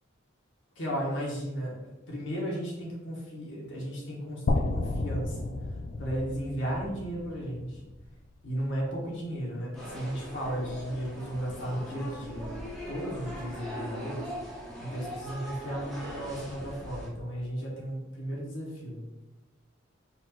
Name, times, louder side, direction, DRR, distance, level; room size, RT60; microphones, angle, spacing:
voice 1, 0.7-5.5 6.0-7.8 8.4-12.4 12.9-14.3 14.8-19.0, equal, 65° left, -4 dB, 1.5 m, -35 dB
sound 1, 4.5-8.5, left 2 dB, 45° left, 0.3 m, -32 dB
sound 2, 9.7-17.1, equal, ahead, 1.0 m, -40 dB
4.3 x 2.8 x 4.5 m, 1.0 s
head